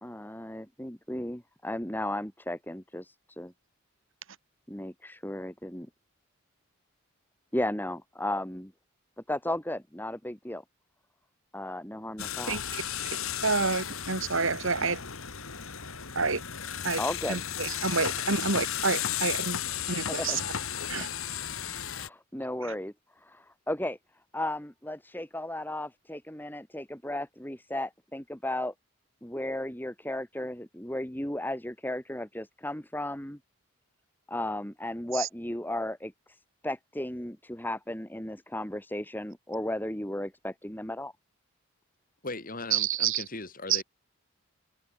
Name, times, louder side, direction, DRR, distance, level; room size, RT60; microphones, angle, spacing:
voice 1, 0.0-3.5 4.7-5.9 7.5-8.7 9.3-10.6 11.5-12.6 17.0-17.4 20.1-20.4 21.9-22.9 23.2-24.0 24.3-28.7 29.2-33.4 34.3-36.4 36.6-41.1, left 1 dB, 10° left, 2.4 m, -35 dB
sound 1, 12.2-22.1, left 9 dB, 70° left, 2.5 m, -34 dB
voice 2, 12.5-12.8 13.4-15.0 16.2-16.4 16.8-17.0 17.3-19.6 19.9-20.4 20.9-21.1 35.2-35.3 42.7-43.2 43.7-43.8, right 5 dB, 60° right, 2.5 m, -28 dB
voice 3, 42.2-43.8, left 2 dB, 40° left, 5.7 m, -38 dB
head